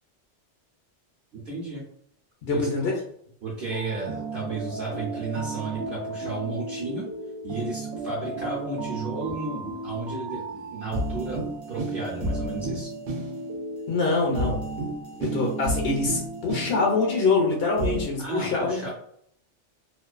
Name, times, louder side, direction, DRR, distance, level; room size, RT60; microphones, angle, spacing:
voice 1, 1.3-1.8 2.5-2.9 3.4-7.1 7.4-12.9 18.2-18.9, right 2 dB, 55° right, -4 dB, 0.8 m, -33 dB
voice 2, 2.4-3.0 13.9-14.6 15.2-18.8, left 3 dB, 65° left, 0 dB, 0.7 m, -24 dB
sound 1, 3.7-18.1, right 2 dB, 85° right, 0.9 m, -33 dB
2.5 x 2.2 x 2.3 m, 0.67 s
omnidirectional pair, 1.2 m